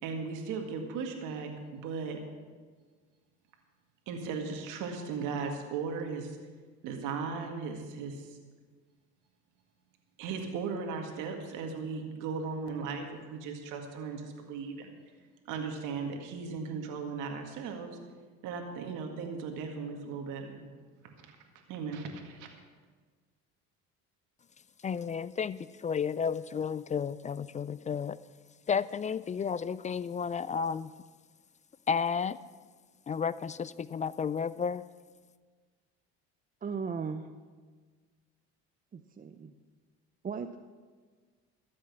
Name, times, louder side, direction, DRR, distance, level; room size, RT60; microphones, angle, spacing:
voice 1, 0.0-2.2 4.1-6.4 6.8-8.3 10.2-14.9 15.5-18.0 18.4-20.6 21.3-21.4 21.7-22.5, right 5 dB, 70° right, 2.0 m, -37 dB
voice 2, 24.8-28.2 28.7-30.9 31.9-32.4 33.1-34.8, left 6 dB, 25° left, 0.3 m, -32 dB
voice 3, 36.6-37.3 38.9-39.5 40.2-40.6, right 5 dB, 25° right, 0.6 m, -37 dB
13.0 x 7.8 x 7.2 m
supercardioid pair, 80°, 32 cm